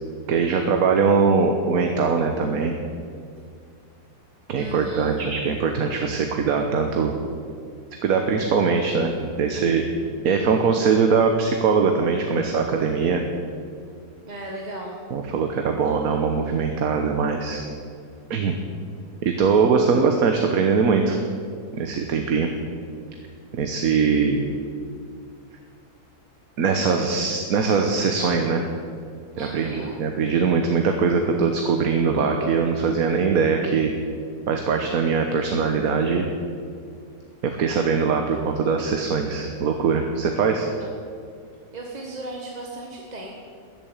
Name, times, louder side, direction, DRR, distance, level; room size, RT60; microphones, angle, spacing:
voice 1, 0.3-2.7 4.5-7.1 8.0-9.8 10.2-13.2 15.1-17.6 18.3-18.5 19.2-21.2 21.7-22.5 23.5-24.5 26.6-28.7 29.4-33.9 34.5-36.3 37.4-40.7, right 5 dB, 65° right, 4 dB, 1.4 m, -21 dB
voice 2, 4.5-5.2 14.2-15.0 29.3-30.0 41.7-43.3, right 1 dB, 25° right, -1 dB, 1.4 m, -36 dB
14.0 x 8.9 x 9.0 m, 2.2 s
omnidirectional pair, 1.7 m